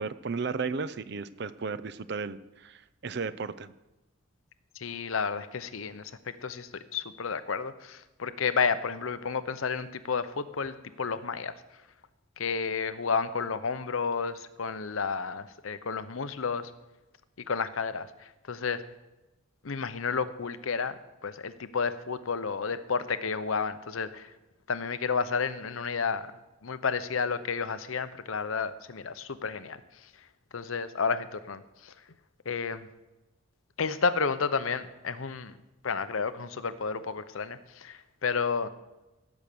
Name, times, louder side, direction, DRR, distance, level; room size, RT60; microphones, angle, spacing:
voice 1, 0.0-3.7, right 4 dB, 55° right, 15 dB, 0.5 m, -34 dB
voice 2, 4.8-11.5 12.4-16.7 17.5-18.1 18.5-18.8 19.6-21.0 21.2-24.3 24.7-26.3 26.6-29.8 30.5-31.9 32.5-32.9 33.8-35.5 35.8-38.7, left 5 dB, 90° left, 13 dB, 0.8 m, -31 dB
16.0 x 6.3 x 6.9 m, 1.0 s
head